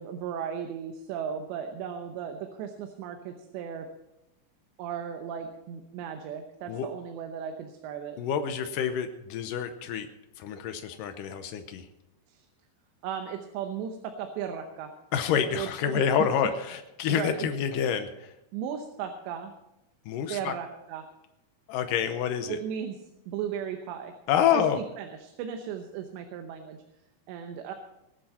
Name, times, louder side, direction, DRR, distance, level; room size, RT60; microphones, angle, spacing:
voice 1, 0.0-3.9 4.8-8.2 12.3-12.4 13.0-14.9 15.6-16.0 17.1-17.5 18.5-19.5 20.3-21.0 22.5-23.0 23.3-24.1 24.5-24.6 25.0-26.8 27.3-27.7, right 8 dB, 90° right, 5 dB, 3.2 m, -36 dB
voice 2, 8.2-10.1 10.4-11.9 15.1-18.3 20.1-20.5 21.7-22.6 24.3-24.8, left 8 dB, 80° left, 8 dB, 1.9 m, -28 dB
20.0 x 10.5 x 4.3 m, 0.91 s
omnidirectional pair, 4.9 m